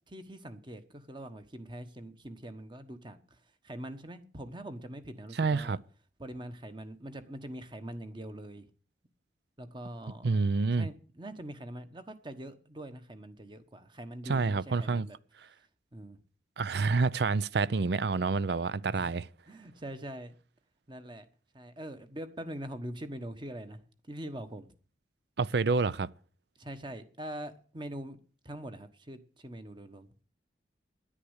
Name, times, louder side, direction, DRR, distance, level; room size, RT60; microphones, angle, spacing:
voice 1, 0.1-3.4 3.6-5.8 6.2-8.7 9.6-10.3 10.7-15.2 15.9-16.2 18.9-19.1 19.5-20.4 20.9-21.3 21.5-23.8 24.1-24.7 26.6-28.2 28.4-30.1, right 1 dB, 25° right, 1.2 m, -43 dB
voice 2, 5.4-5.8 10.2-10.9 14.3-15.1 16.6-19.3 25.4-26.1, right 4 dB, 65° right, 0.5 m, -28 dB
10.0 x 9.9 x 8.0 m
head